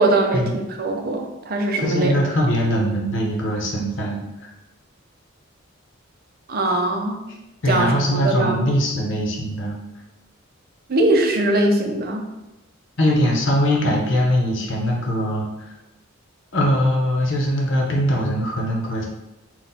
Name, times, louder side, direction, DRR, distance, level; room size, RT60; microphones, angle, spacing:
voice 1, 0.0-2.1 6.5-7.3 7.7-8.6 10.9-12.3, right 2 dB, 50° right, 3 dB, 0.6 m, -21 dB
voice 2, 1.8-4.2 7.6-9.8 13.0-15.5 16.5-19.1, equal, 65° left, -1 dB, 0.9 m, -21 dB
4.2 x 2.3 x 4.1 m, 0.97 s
head